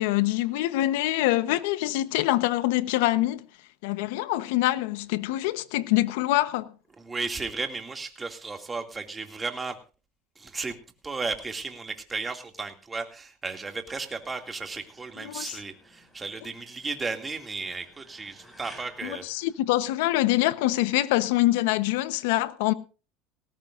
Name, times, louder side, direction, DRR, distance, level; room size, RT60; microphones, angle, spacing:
voice 1, 0.0-3.4 3.8-6.7 15.2-15.6 19.0-22.7, left 16 dB, 80° left, 1.0 m, -25 dB
voice 2, 7.0-9.8 10.4-10.8 11.0-19.3, right 4 dB, 15° right, 2.4 m, -34 dB
sound 1, 14.0-20.3, equal, 5° left, 6.1 m, -55 dB
19.5 x 17.5 x 2.6 m
supercardioid pair, 125°, 0 cm